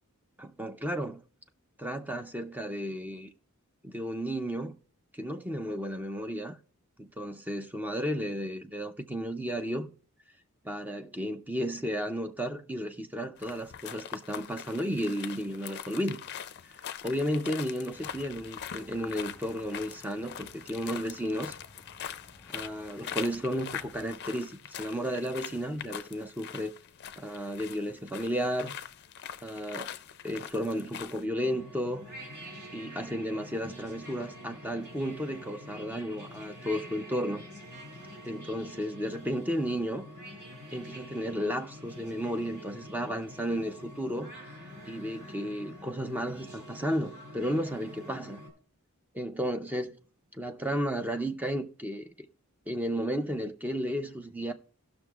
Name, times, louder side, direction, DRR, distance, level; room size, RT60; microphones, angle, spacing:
voice 1, 0.4-1.2 1.8-3.3 3.8-4.7 5.1-6.6 7.0-9.9 10.6-16.2 17.0-21.6 22.5-26.7 27.2-28.7 29.4-29.9 30.2-32.0 32.7-37.4 38.2-40.1 40.7-44.3 44.9-48.4 49.1-50.0 50.3-52.0 52.7-54.5, equal, 10° right, 0.5 m, -33 dB
sound 1, 13.4-31.2, left 9 dB, 50° left, 0.4 m, -43 dB
sound 2, 17.9-24.1, left 2 dB, 15° left, 1.0 m, -56 dB
sound 3, 31.4-48.5, equal, 50° right, 2.4 m, -46 dB
17.0 x 6.1 x 2.4 m
head